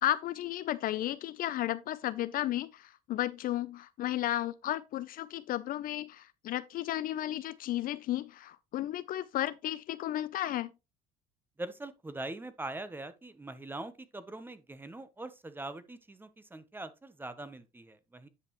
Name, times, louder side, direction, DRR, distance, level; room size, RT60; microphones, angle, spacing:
voice 1, 0.0-10.7, left 13 dB, 50° left, 0.5 m, -33 dB
voice 2, 11.6-18.3, right 2 dB, 10° right, 0.9 m, -42 dB
9.8 x 5.3 x 3.0 m
supercardioid pair, 105°, 18 cm